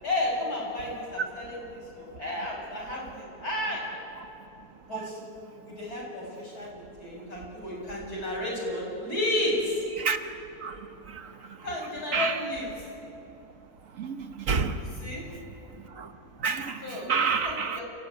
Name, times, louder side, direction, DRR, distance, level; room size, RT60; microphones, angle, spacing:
voice 1, 0.0-3.9 4.9-5.2 5.6-9.8 11.6-12.7 14.8-15.2 16.8-17.8, left 1 dB, 80° left, -3 dB, 7.7 m, -32 dB
voice 2, 14.0-14.8 16.0-16.1 16.4-16.8 17.1-17.8, right 5 dB, 60° right, 8 dB, 1.5 m, -27 dB
29.0 x 15.0 x 9.4 m, 2.8 s
omnidirectional pair, 1.6 m